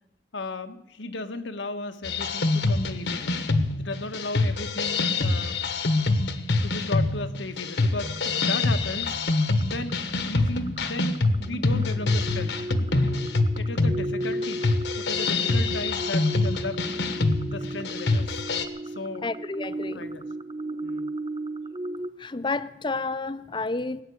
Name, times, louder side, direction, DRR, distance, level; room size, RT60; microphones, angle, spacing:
voice 1, 0.3-3.4 3.7-5.6 6.6-9.2 9.6-12.6 13.6-16.8 17.5-18.4 18.8-19.2 19.9-20.2 20.8-21.1, left 2 dB, 85° left, 1.3 m, -35 dB
sound 1, 2.0-18.7, left 3 dB, 70° left, 1.3 m, -25 dB
sound 2, 8.0-22.1, right 1 dB, 25° right, 0.5 m, -35 dB
voice 2, 19.2-20.1 22.2-24.0, left 3 dB, 25° left, 0.6 m, -30 dB
18.5 x 9.0 x 8.3 m
head